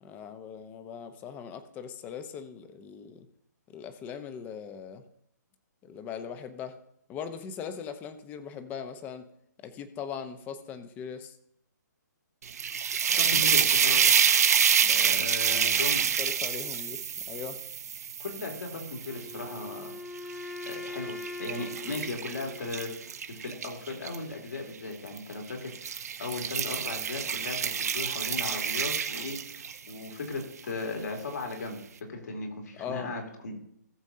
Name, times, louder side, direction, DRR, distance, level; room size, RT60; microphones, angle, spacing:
voice 1, 0.0-3.3 3.7-5.0 5.8-6.8 7.1-9.3 9.6-11.3 14.8-15.3 15.5-15.9 16.2-17.0 17.3-17.6 27.4-27.6 32.8-33.1, left 7 dB, 15° left, 9 dB, 0.9 m, -40 dB
sound 1, 12.4-19.6 20.2-24.2 25.1-25.3 25.7-29.9, right 7 dB, 55° right, 1.0 m, -27 dB
voice 2, 13.1-14.1 15.0-16.0 18.2-19.9 20.7-22.9 23.3-31.8 32.1-33.5, left 3 dB, 65° left, 2 dB, 2.7 m, -37 dB
Wind instrument woodwind instrument, 19.1-23.1, left 3 dB, ahead, 0.3 m, -42 dB
18.0 x 7.2 x 2.8 m, 0.75 s
figure-of-eight pair, 140°, 10 cm